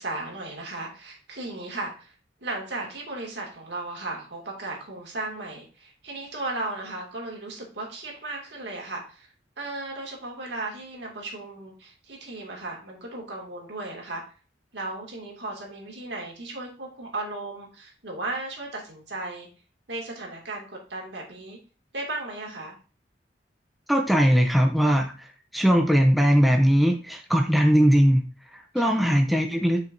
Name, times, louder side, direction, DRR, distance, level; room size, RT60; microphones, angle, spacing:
voice 1, 0.0-2.1 2.4-14.2 14.7-19.5 19.9-21.6 21.9-22.8 28.8-29.0, right 2 dB, 75° right, 0 dB, 2.3 m, -35 dB
voice 2, 23.9-25.1 25.5-28.2 28.7-29.8, equal, ahead, 3 dB, 0.6 m, -20 dB
7.5 x 5.6 x 2.6 m, 0.36 s
head